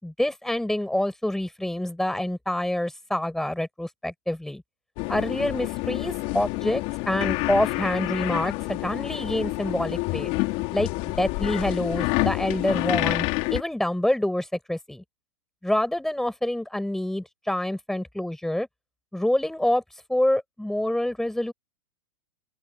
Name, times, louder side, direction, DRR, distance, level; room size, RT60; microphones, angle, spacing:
voice 1, 0.0-4.6 5.1-10.3 10.7-10.9 11.2-15.0 15.6-18.7 19.1-19.8 20.1-21.5, left 1 dB, ahead, 6.1 m, -26 dB
sound 1, 5.0-13.6, left 25 dB, 45° left, 4.0 m, -28 dB
open air
hypercardioid pair, 140°, 16 cm